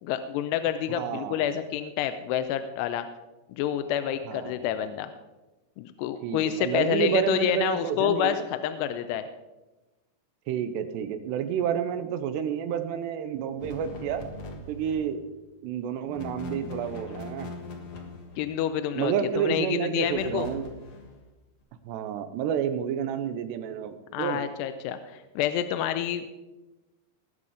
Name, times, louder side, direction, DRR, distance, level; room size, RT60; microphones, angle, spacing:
voice 1, 0.0-3.1 3.5-5.1 5.8-9.3 18.4-20.5 24.1-26.3, left 10 dB, 85° left, 9 dB, 2.7 m, -28 dB
voice 2, 1.0-1.4 4.3-4.7 6.2-8.4 10.5-14.2 14.7-15.2 15.6-17.5 18.9-20.7 21.9-24.4, right 9 dB, 90° right, 10 dB, 3.0 m, -29 dB
sound 1, 13.6-15.2 16.0-18.7 20.0-21.2, left 2 dB, 55° left, 1.5 m, -41 dB
19.0 x 7.0 x 5.0 m, 1.1 s
omnidirectional pair, 4.8 m